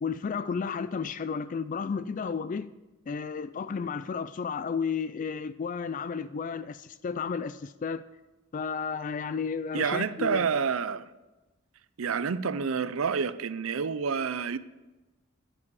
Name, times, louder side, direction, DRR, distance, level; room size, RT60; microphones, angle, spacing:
voice 1, 0.0-2.7 3.1-8.0 8.5-10.5, left 5 dB, 35° left, 0.3 m, -32 dB
voice 2, 9.7-11.1 12.0-14.6, right 6 dB, 75° right, 0.5 m, -28 dB
9.8 x 9.7 x 4.8 m
head